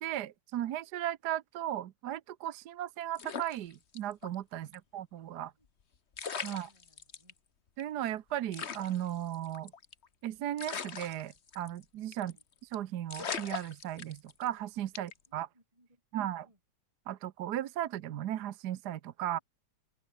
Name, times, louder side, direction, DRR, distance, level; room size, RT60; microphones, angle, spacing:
voice 1, 0.0-4.7 4.9-5.5 6.4-6.7 7.8-9.7 10.2-12.3 12.7-15.5 16.1-16.4 17.1-19.4, right 12 dB, 65° right, 1.2 m, -36 dB
sound 1, 3.1-4.3 4.7-4.8 5.8-5.9 6.1-7.3 7.8-7.9 8.1-8.2 8.5-10.1 10.6-11.8 12.1-12.4 12.7-12.8 13.1-14.5 14.9-15.3, left 6 dB, 40° left, 1.3 m, -40 dB
voice 2, 6.4-7.3 12.1-12.4 15.3-16.6, right 1 dB, 15° right, 7.9 m, -66 dB
open air
omnidirectional pair, 2.1 m